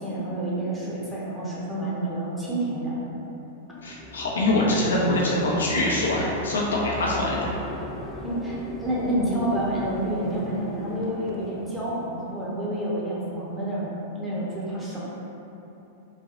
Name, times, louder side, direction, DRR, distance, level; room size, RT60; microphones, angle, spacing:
voice 1, 0.0-3.2 8.2-13.9 14.1-15.0, right 1 dB, 10° right, -8 dB, 0.9 m, -29 dB
voice 2, 3.8-7.5, left 1 dB, 75° left, -4 dB, 0.6 m, -24 dB
sound 1, 3.8-12.8, left 1 dB, 20° left, 0.3 m, -38 dB
4.0 x 2.2 x 2.9 m, 3.0 s
figure-of-eight pair, 100°, 0 cm